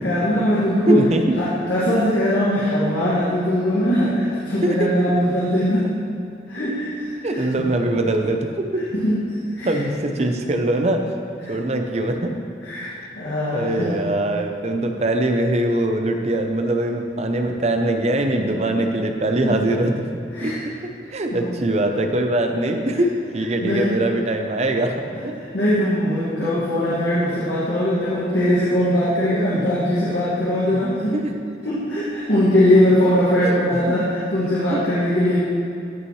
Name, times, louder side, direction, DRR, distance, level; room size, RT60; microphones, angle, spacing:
voice 1, 0.0-1.0 1.4-5.9 6.5-7.7 8.9-9.8 11.4-11.5 12.6-13.9 18.5-18.6 19.4-19.6 20.3-20.6 21.3-21.6 23.6-23.9 25.4-31.2 31.6-35.4, equal, 85° left, -10 dB, 2.0 m, -21 dB
voice 2, 0.9-1.2 7.2-8.8 9.6-11.1 11.5-12.3 13.5-20.1 20.4-25.3 26.4-26.5 30.7-30.8 31.1-31.3 33.4-33.8 34.4-34.8, right 1 dB, 35° right, 4 dB, 0.6 m, -22 dB
14.0 x 5.7 x 3.2 m, 2.7 s
head